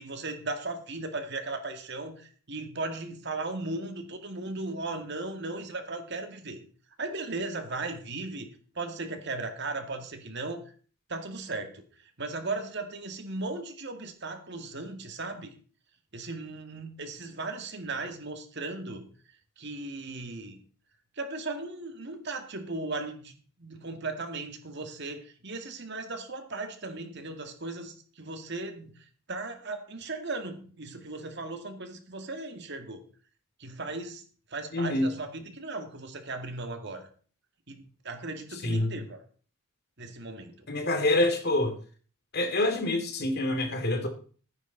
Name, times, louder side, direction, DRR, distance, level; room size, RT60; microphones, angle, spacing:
voice 1, 0.0-6.6 7.0-8.5 8.7-10.6 11.1-11.8 12.2-15.5 16.1-19.1 19.6-20.6 21.2-33.0 33.6-34.2 34.5-37.1 37.7-39.2 40.0-40.7, right 3 dB, 55° right, 6 dB, 2.1 m, -37 dB
voice 2, 34.7-35.1 38.6-38.9 40.7-41.8 42.3-44.1, left 1 dB, 50° left, 5 dB, 2.3 m, -26 dB
15.0 x 9.7 x 4.0 m, 0.41 s
head